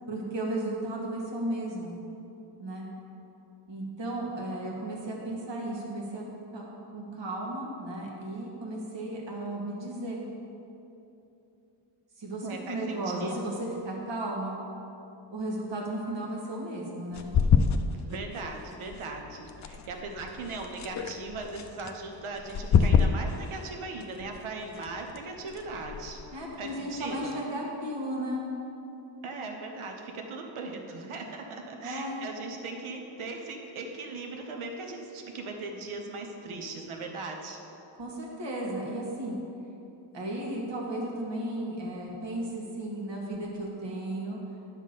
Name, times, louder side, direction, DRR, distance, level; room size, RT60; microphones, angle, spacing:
voice 1, 0.1-1.9 2.6-2.9 3.7-6.3 6.5-6.7 6.9-10.2 12.2-14.6 15.3-17.3 26.3-28.5 31.8-32.2 38.0-39.4 40.1-44.4, right 1 dB, 60° right, -2 dB, 1.7 m, -34 dB
voice 2, 12.4-13.5 17.8-26.2 26.6-27.3 29.2-37.6, right 3 dB, 75° right, 3 dB, 1.0 m, -39 dB
sound 1, 17.1-27.4, left 6 dB, 40° left, 0.4 m, -29 dB
10.0 x 3.8 x 6.6 m, 2.9 s
wide cardioid pair, 120°, 49 cm